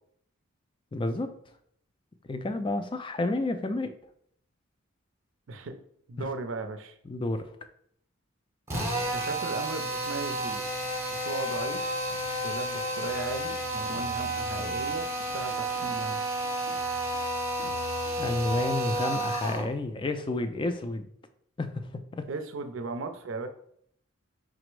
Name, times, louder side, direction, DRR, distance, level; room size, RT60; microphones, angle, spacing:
voice 1, 0.9-1.3 2.2-3.9 6.2-6.3 7.1-7.5 18.2-21.1 21.6-21.8 22.1-22.3, left 2 dB, 25° left, 9 dB, 0.3 m, -30 dB
voice 2, 6.1-6.9 9.1-10.6 11.0-11.8 12.4-16.2 22.3-23.5, right 3 dB, 70° right, 7 dB, 0.5 m, -36 dB
Drill, 8.7-19.7, right 1 dB, 15° right, 0.7 m, -31 dB
sound 1, 12.1-18.9, left 4 dB, 80° left, 0.5 m, -47 dB
5.0 x 2.0 x 4.6 m, 0.68 s
head